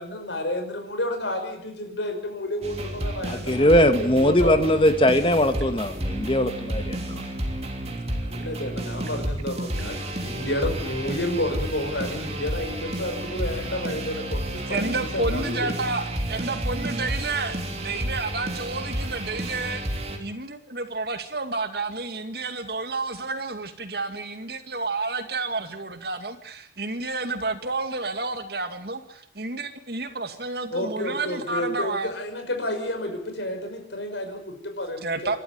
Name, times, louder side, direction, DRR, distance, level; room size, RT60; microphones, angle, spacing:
voice 1, 0.0-4.6 8.2-15.7 30.7-35.4, left 1 dB, 75° left, 5.9 m, -31 dB
sound 1, 2.6-20.2, right 1 dB, 35° right, 3.2 m, -31 dB
voice 2, 3.3-7.2, left 1 dB, 30° left, 1.8 m, -20 dB
voice 3, 14.7-16.0 16.3-17.6 17.8-19.8 20.2-29.0 29.4-32.1 35.0-35.4, right 3 dB, 55° right, 2.3 m, -30 dB
27.5 x 12.5 x 9.6 m
head